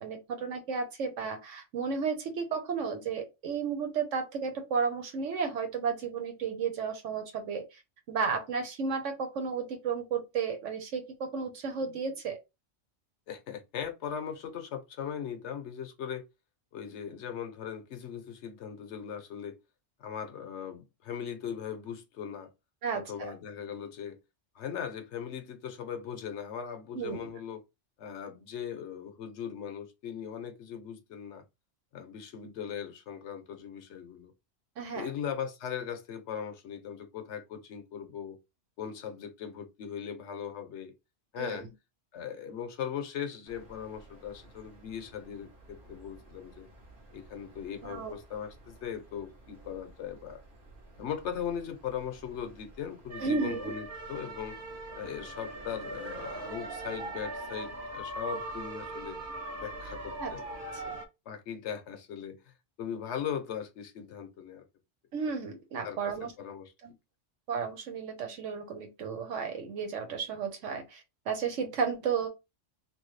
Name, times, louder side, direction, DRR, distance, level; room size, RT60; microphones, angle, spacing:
voice 1, 0.0-7.8 8.1-12.4 22.8-23.3 26.9-27.3 34.8-35.1 41.4-41.7 47.8-48.1 53.2-53.7 60.2-60.3 60.7-60.8 65.1-66.3 66.8-66.9 67.5-72.3, right 5 dB, 90° right, 1.2 m, -33 dB
voice 2, 13.3-16.2 16.7-19.6 20.0-22.5 22.9-24.2 24.5-27.6 28.0-31.5 31.9-34.3 35.0-38.4 38.8-40.9 41.3-41.7 42.1-46.7 47.1-50.4 51.0-54.6 55.0-59.2 59.6-60.5 60.8-61.0 61.3-62.5 62.8-64.7 65.8-66.7, left 8 dB, 75° left, 1.0 m, -39 dB
sound 1, 43.5-61.0, right 2 dB, 50° right, 0.8 m, -43 dB
3.0 x 2.7 x 3.1 m
omnidirectional pair, 1.2 m